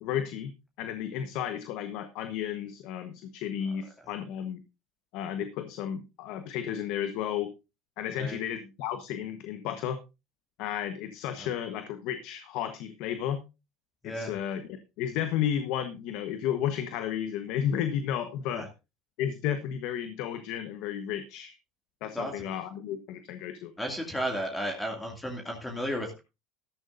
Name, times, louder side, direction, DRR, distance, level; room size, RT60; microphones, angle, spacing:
voice 1, 0.0-4.6 5.1-7.5 8.0-10.0 10.6-13.4 14.0-14.6 15.0-18.7 19.2-21.5 22.0-23.7, left 9 dB, 65° left, 9 dB, 1.2 m, -33 dB
voice 2, 22.1-22.5 23.8-26.2, equal, 10° left, 2 dB, 2.4 m, -33 dB
13.5 x 12.0 x 2.6 m, 0.27 s
supercardioid pair, 100°, 0 cm